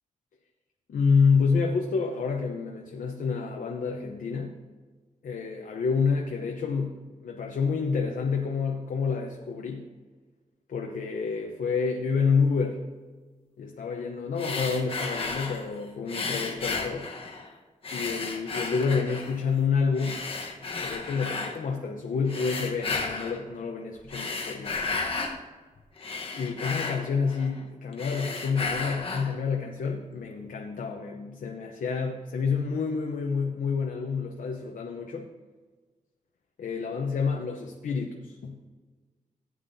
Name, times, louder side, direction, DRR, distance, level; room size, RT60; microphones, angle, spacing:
voice 1, 0.9-4.6 5.2-9.8 10.7-12.8 13.6-17.1 17.9-20.2 20.8-25.2 26.3-35.3 36.6-38.6, left 5 dB, 85° left, 2 dB, 0.8 m, -28 dB
sound 1, 14.4-15.7 16.1-17.5 17.8-19.4 20.0-21.6 22.3-23.4 24.0-25.4 25.8-27.6 27.9-29.4, left 4 dB, 45° left, 1.2 m, -33 dB
15.0 x 9.5 x 2.7 m, 1.4 s
wide cardioid pair, 180°, 14 cm